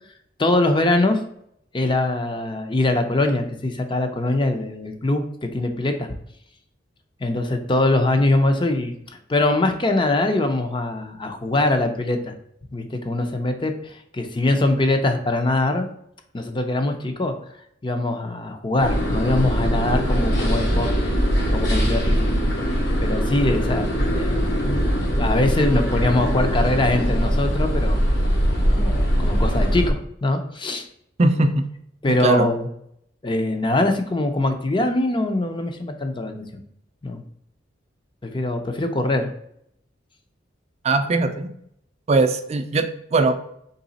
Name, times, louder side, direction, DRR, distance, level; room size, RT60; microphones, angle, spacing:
voice 1, 0.4-1.2 1.7-6.1 7.2-8.9 9.3-12.3 12.7-15.9 16.3-17.3 17.8-21.1 21.5-22.4 23.0-24.4 25.2-28.0 28.4-30.9 32.0-32.7 33.2-36.5 37.0-37.2 38.2-39.3, left 2 dB, 25° left, 6 dB, 0.5 m, -22 dB
sound 1, 18.8-29.9, equal, 65° left, 1.2 m, -21 dB
voice 2, 31.2-31.7 32.2-32.5 40.8-41.5 42.1-43.4, right 3 dB, 35° right, 8 dB, 0.4 m, -20 dB
4.0 x 3.2 x 4.0 m, 0.72 s
head